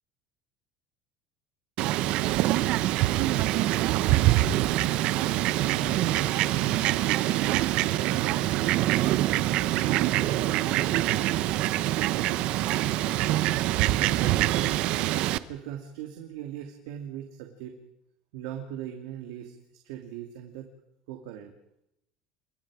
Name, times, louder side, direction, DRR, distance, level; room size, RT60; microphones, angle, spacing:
Fowl, 1.8-15.4, right 15 dB, 50° right, 0.9 m, -25 dB
voice 1, 5.7-7.2 7.9-8.5 8.9-13.3 13.6-14.7 15.5-17.8 18.3-19.5 19.8-20.7 21.1-21.5, right 10 dB, 80° right, 4 dB, 2.7 m, -40 dB
29.0 x 22.5 x 5.0 m, 0.80 s
cardioid pair, 165°, 2 cm